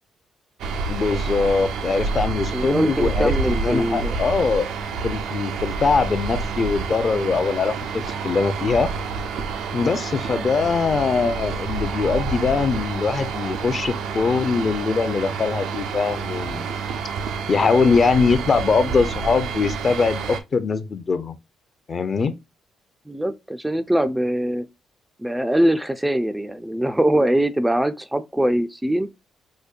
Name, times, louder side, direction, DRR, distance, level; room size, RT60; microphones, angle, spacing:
sound 1, 0.6-20.4, right 5 dB, 85° right, 0.5 m, -28 dB
voice 1, 0.9-4.7 5.0-8.9 9.7-16.7 17.5-21.4 21.9-22.3, left 4 dB, 40° left, 0.5 m, -22 dB
voice 2, 2.5-4.1 23.1-24.6 25.2-29.1, right 1 dB, 10° right, 0.3 m, -22 dB
5.1 x 2.2 x 2.4 m
cardioid pair, 90°, 0 cm